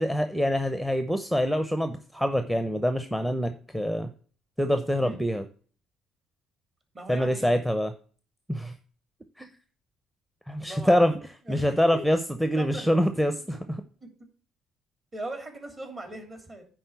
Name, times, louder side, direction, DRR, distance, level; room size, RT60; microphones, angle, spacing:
voice 1, 0.0-4.1 4.6-5.4 7.1-7.9 8.5-8.7 9.4-9.5 10.5-11.2 11.5-13.6, equal, 5° right, 9 dB, 0.8 m, -25 dB
voice 2, 4.9-5.2 6.9-7.6 10.6-11.0 11.5-12.0 12.5-13.0 13.4-13.6 15.1-16.7, right 1 dB, 35° right, 4 dB, 3.0 m, -39 dB
10.0 x 3.8 x 6.8 m, 0.42 s
hypercardioid pair, 55°, 0 cm